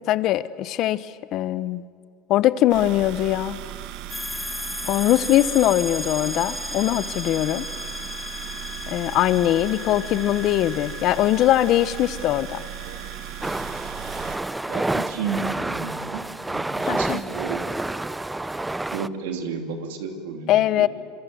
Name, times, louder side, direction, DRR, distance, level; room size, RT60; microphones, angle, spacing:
voice 1, 0.1-1.8 2.3-3.6 4.9-7.6 8.9-12.6 16.9-17.2 20.5-20.9, left 13 dB, 55° left, 16 dB, 0.9 m, -21 dB
sound 1, 2.7-14.4, right 13 dB, 65° right, 1.6 m, -37 dB
sound 2, 4.1-16.4, left 3 dB, 10° left, 2.0 m, -37 dB
sound 3, 13.4-19.1, right 2 dB, 10° right, 0.6 m, -29 dB
voice 2, 14.7-16.2 16.5-17.6 18.9-20.9, right 6 dB, 85° right, 4 dB, 3.0 m, -32 dB
25.5 x 23.0 x 7.9 m, 2.1 s
supercardioid pair, 105°, 0 cm